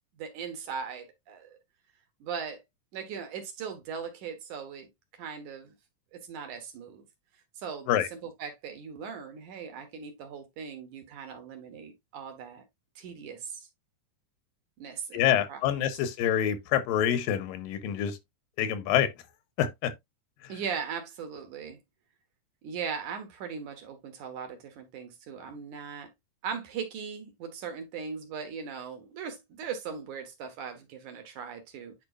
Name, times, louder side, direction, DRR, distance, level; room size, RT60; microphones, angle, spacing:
voice 1, 0.2-1.6 2.2-2.6 2.9-4.9 5.2-5.7 6.1-7.0 7.6-12.6 13.0-13.7 14.8-15.9 20.5-21.8 22.6-26.1 26.4-31.9, right 6 dB, 65° right, 2.8 m, -39 dB
voice 2, 15.1-18.2 18.6-19.1 19.6-19.9, left 10 dB, 85° left, 2.7 m, -26 dB
10.5 x 4.6 x 2.5 m
omnidirectional pair, 3.9 m